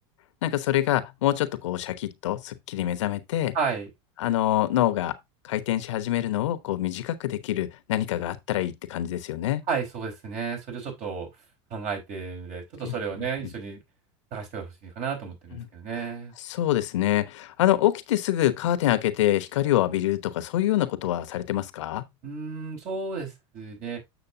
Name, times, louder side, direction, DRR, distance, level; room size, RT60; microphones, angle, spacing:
voice 1, 0.4-3.5 4.2-5.2 5.4-9.6 12.8-13.0 15.5-15.7 16.4-22.0, left 13 dB, 85° left, 1.0 m, -25 dB
voice 2, 3.5-3.9 9.7-11.3 11.7-13.8 14.3-16.3 22.2-24.0, right 5 dB, 50° right, 4.8 m, -32 dB
8.1 x 6.6 x 2.7 m
supercardioid pair, 115°, 15 cm